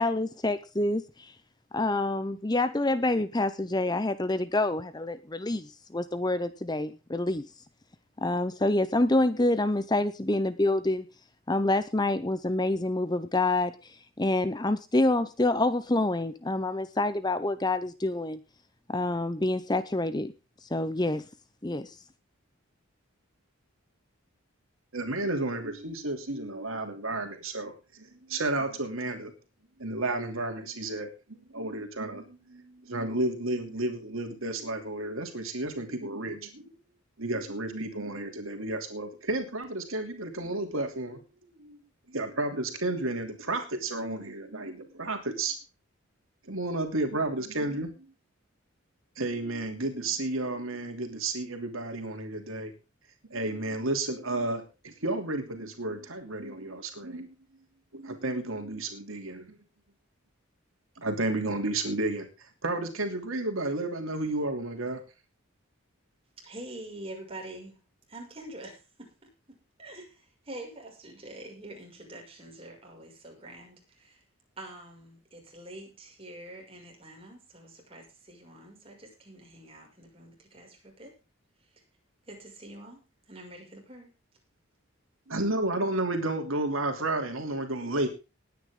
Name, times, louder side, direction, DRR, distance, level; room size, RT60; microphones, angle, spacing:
voice 1, 0.0-1.3 1.7-7.4 8.2-11.0 11.5-18.4 18.9-20.3 20.7-21.2 21.6-22.0, left 2 dB, 20° left, 13 dB, 0.7 m, -27 dB
voice 2, 24.9-29.3 29.8-36.7 37.2-41.2 41.6-41.8 42.1-45.6 46.5-48.1 49.2-52.7 53.3-57.3 57.9-59.6 61.0-65.0 85.3-88.1, right 2 dB, 75° right, 5 dB, 2.9 m, -32 dB
voice 3, 66.4-67.8 68.1-69.1 69.5-74.2 74.6-81.1 81.7-81.8 82.3-83.0 83.3-84.1, right 1 dB, 25° right, 1 dB, 6.2 m, -46 dB
19.5 x 9.5 x 3.8 m, 0.31 s
head